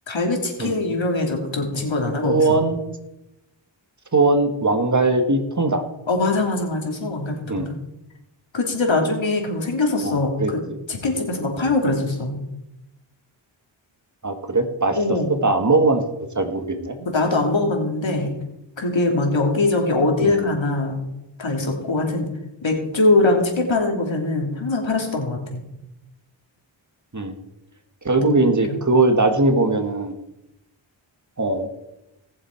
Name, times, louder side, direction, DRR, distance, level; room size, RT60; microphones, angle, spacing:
voice 1, 0.1-2.6 6.1-7.8 8.5-10.6 10.9-12.4 15.0-15.3 17.0-18.3 18.8-21.0 21.4-22.3 22.6-25.6 28.2-28.8, left 2 dB, 70° left, 2 dB, 3.0 m, -22 dB
voice 2, 2.2-2.8 4.1-5.8 7.5-7.7 10.0-10.5 14.2-16.0 16.4-17.0 20.2-20.3 27.1-27.3 28.0-30.1 31.4-31.7, right 2 dB, 35° right, 6 dB, 1.6 m, -20 dB
19.0 x 7.2 x 4.6 m, 0.90 s
cardioid pair, 50°, 48 cm